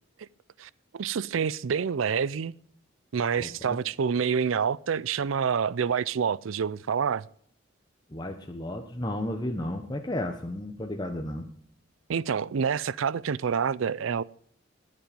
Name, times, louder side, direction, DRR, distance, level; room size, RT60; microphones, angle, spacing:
voice 1, 0.6-2.5 3.1-7.3 12.1-14.2, right 6 dB, 80° right, 0.4 m, -27 dB
voice 2, 3.4-3.8 8.1-11.5, left 1 dB, 20° left, 1.0 m, -33 dB
20.5 x 7.6 x 5.2 m
head